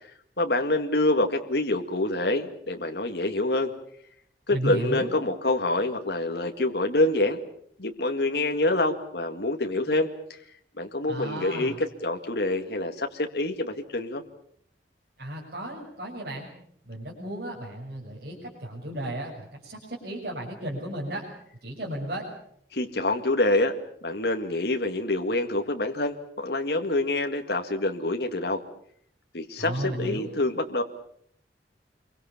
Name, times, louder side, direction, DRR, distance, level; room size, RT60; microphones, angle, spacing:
voice 1, 0.4-3.7 4.5-7.4 7.8-10.1 10.8-11.7 12.0-14.2 22.7-23.8 24.0-28.6 29.3-30.8, left 2 dB, 65° left, 5 dB, 2.1 m, -26 dB
voice 2, 4.5-5.1 11.1-11.8 15.2-16.5 16.9-21.3 21.6-22.3 29.6-30.3, right 1 dB, 60° right, -3 dB, 6.8 m, -34 dB
28.0 x 23.5 x 7.1 m, 0.66 s
head